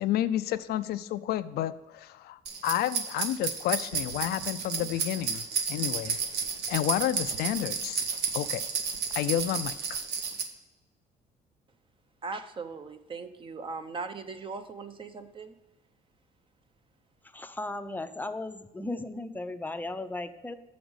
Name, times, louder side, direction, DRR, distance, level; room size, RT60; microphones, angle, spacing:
voice 1, 0.0-6.2 6.7-8.0 8.3-8.6 9.1-10.0, left 12 dB, 70° left, 13 dB, 0.4 m, -30 dB
sound 1, 2.5-10.4, right 6 dB, 80° right, 1.1 m, -32 dB
voice 2, 12.2-15.5, right 4 dB, 30° right, 9 dB, 0.7 m, -39 dB
voice 3, 17.2-20.5, left 2 dB, 10° left, 9 dB, 0.5 m, -36 dB
7.0 x 5.1 x 6.3 m, 1.0 s
cardioid pair, 110°, 17 cm